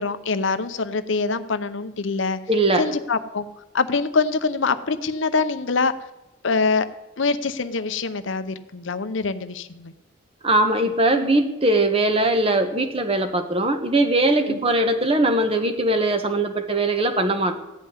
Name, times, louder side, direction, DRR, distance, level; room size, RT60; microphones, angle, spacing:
voice 1, 0.0-2.4 2.8-3.5 3.7-5.9 6.4-6.9 7.2-9.9 14.4-14.6, left 4 dB, 70° left, 0.7 m, -24 dB
voice 2, 2.5-2.8 10.4-17.6, right 2 dB, 25° right, 1.1 m, -20 dB
15.5 x 5.6 x 9.6 m
head